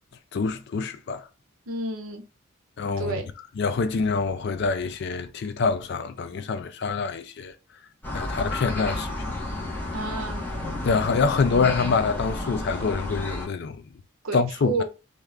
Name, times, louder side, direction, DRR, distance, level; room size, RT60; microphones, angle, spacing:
voice 1, 0.3-1.3 2.8-3.2 3.6-7.5 8.1-9.2 10.8-13.8 14.3-14.8, left 4 dB, 50° left, 0.3 m, -25 dB
voice 2, 1.7-2.2 3.0-3.3 9.9-10.5 14.2-14.8, right 2 dB, 80° right, 0.7 m, -30 dB
sound 1, 8.0-13.5, left 1 dB, 10° left, 1.0 m, -31 dB
2.7 x 2.3 x 3.3 m
head